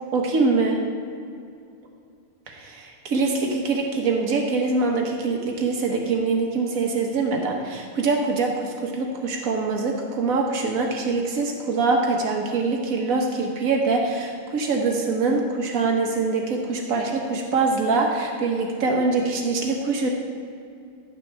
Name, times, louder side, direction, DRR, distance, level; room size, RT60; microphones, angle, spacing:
voice 1, 0.1-0.8 2.5-20.1, right 3 dB, 85° right, 1 dB, 1.5 m, -24 dB
12.5 x 9.7 x 3.4 m, 2.4 s
omnidirectional pair, 1.4 m